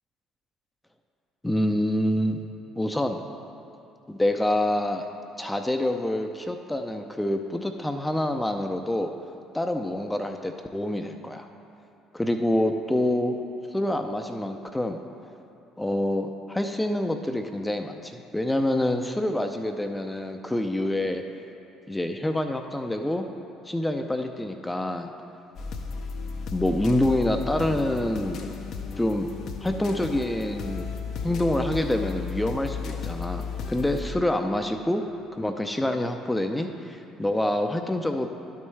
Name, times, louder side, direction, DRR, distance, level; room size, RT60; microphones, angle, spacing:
voice 1, 1.4-2.4 2.8-3.2 4.1-5.1 5.4-9.1 9.5-11.5 12.1-13.4 13.7-15.0 15.8-21.2 21.9-23.2 23.7-25.1 26.5-28.4 29.0-29.3 29.6-30.9 31.2-35.0 35.3-38.3, left 1 dB, 10° left, 5 dB, 0.6 m, -26 dB
sound 1, 25.6-34.2, left 5 dB, 60° left, 0.6 m, -34 dB
12.0 x 5.4 x 3.2 m, 2.8 s
hypercardioid pair, 55°, 0 cm